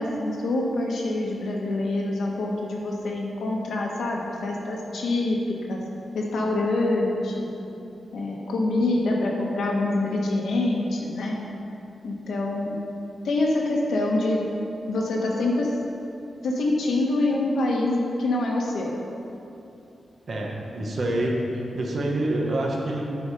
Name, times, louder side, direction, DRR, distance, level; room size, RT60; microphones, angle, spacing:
voice 1, 0.0-5.8 6.1-7.5 8.1-11.4 12.0-12.8 13.2-14.4 14.9-15.8 16.4-18.9, left 2 dB, 85° left, -1 dB, 1.3 m, -25 dB
voice 2, 20.3-23.0, right 1 dB, 45° right, -1 dB, 1.2 m, -27 dB
9.5 x 4.9 x 5.4 m, 2.9 s
wide cardioid pair, 160°, 0 cm